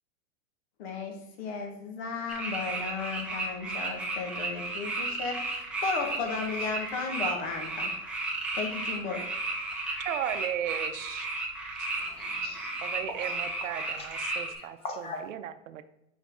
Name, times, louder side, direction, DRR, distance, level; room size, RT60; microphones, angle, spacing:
voice 1, 0.8-7.9 8.2-8.3 8.5-9.2, left 4 dB, 50° left, 3 dB, 1.6 m, -35 dB
sound 1, 2.3-14.5, right 2 dB, 5° right, 0.5 m, -34 dB
voice 2, 9.6-11.3 11.8-11.9 12.8-14.8 15.3-15.8, right 10 dB, 70° right, 10 dB, 0.7 m, -36 dB
voice 3, 11.9-12.8 13.2-13.3 14.0-15.2, left 3 dB, 15° left, 3 dB, 0.9 m, -42 dB
5.9 x 5.2 x 3.7 m, 0.87 s
supercardioid pair, 155°, 40 cm